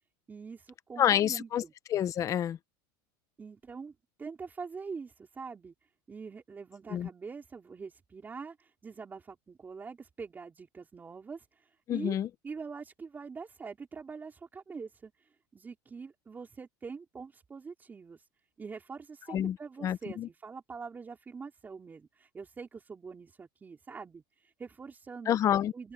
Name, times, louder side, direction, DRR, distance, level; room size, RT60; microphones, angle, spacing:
voice 1, 0.3-1.7 3.4-5.7 6.1-12.2 12.4-18.3 18.6-25.4 25.7-25.9, right 5 dB, 15° right, 4.4 m, -44 dB
voice 2, 1.0-1.6 1.9-2.6 6.9-7.1 11.9-12.3 19.3-20.3 25.3-25.7, left 10 dB, 30° left, 0.8 m, -28 dB
open air
supercardioid pair, 140°, 11 cm